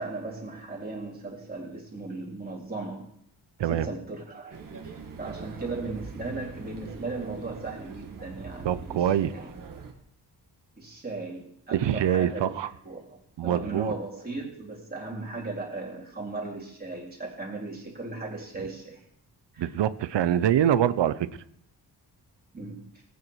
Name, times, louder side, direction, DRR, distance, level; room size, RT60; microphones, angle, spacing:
voice 1, 0.0-3.1 3.6-9.5 10.8-12.6 12.8-19.0 19.5-19.7 22.5-22.8, right 3 dB, 20° right, -3 dB, 3.9 m, -37 dB
sound 1, 4.5-9.9, right 5 dB, 50° right, 1.9 m, -42 dB
voice 2, 8.6-9.3 11.7-12.7 13.4-13.9 19.6-21.3, right 10 dB, 90° right, 15 dB, 0.8 m, -24 dB
19.0 x 9.6 x 4.7 m, 0.72 s
wide cardioid pair, 145°, 42 cm